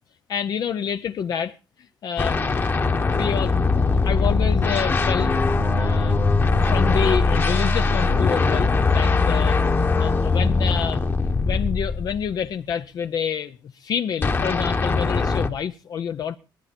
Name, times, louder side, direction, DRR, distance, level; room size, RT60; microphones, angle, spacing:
voice 1, 0.3-1.6 2.0-2.8 3.2-5.3 5.8-6.4 6.6-9.6 10.0-11.1 11.4-16.4, left 8 dB, 55° left, 0.6 m, -28 dB
sound 1, 2.2-12.4 14.2-15.5, left 3 dB, 25° left, 1.2 m, -21 dB
19.0 x 12.5 x 4.3 m
cardioid pair, 140°, 8 cm